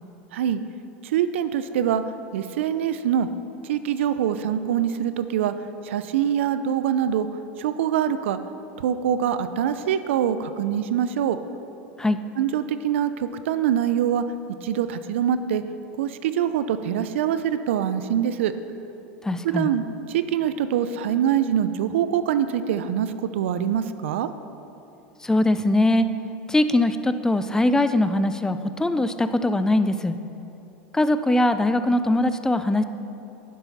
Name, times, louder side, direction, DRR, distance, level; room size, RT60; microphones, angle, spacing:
voice 1, 1.0-2.0 2.3-3.3 3.6-5.5 5.8-7.3 7.6-8.4 8.8-11.4 12.4-14.2 14.6-15.6 16.0-18.5 19.5-24.3, right 9 dB, 75° right, 12 dB, 0.6 m, -24 dB
voice 2, 19.2-19.7 25.2-26.1 26.5-30.2 30.9-32.8, left 1 dB, 10° left, 11 dB, 0.5 m, -21 dB
11.0 x 10.0 x 4.2 m, 2.8 s
hypercardioid pair, 95°, 7 cm